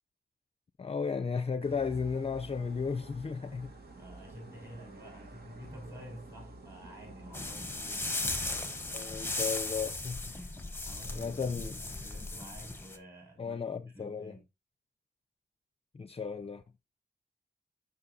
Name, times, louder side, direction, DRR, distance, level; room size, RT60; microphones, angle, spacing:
voice 1, 0.8-3.7 8.9-10.2 11.2-11.8 13.4-14.4 15.9-16.6, left 5 dB, 35° left, 0.5 m, -34 dB
sound 1, 1.6-9.0, right 2 dB, 60° right, 2.2 m, -51 dB
voice 2, 3.9-8.6 10.3-14.5, equal, 15° right, 6.0 m, -50 dB
sound 2, 7.3-13.0, left 2 dB, 10° left, 1.1 m, -37 dB
13.0 x 5.5 x 2.7 m
wide cardioid pair, 135°, 18 cm